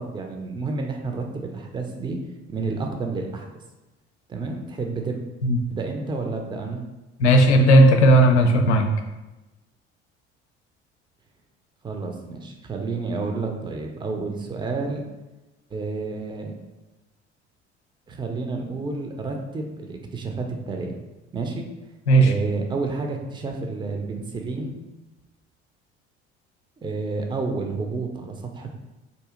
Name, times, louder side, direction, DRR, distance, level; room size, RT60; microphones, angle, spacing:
voice 1, 0.0-2.2 2.5-3.5 4.3-5.2 5.7-6.8 11.8-15.0 15.7-16.5 18.1-21.0 21.3-21.7 22.2-24.8 26.8-28.7, right 3 dB, 15° right, 3 dB, 0.5 m, -30 dB
voice 2, 7.2-8.8 22.1-22.3, right 1 dB, 80° left, 4 dB, 0.5 m, -15 dB
4.0 x 2.7 x 3.7 m, 1.1 s
figure-of-eight pair, 55°, 34 cm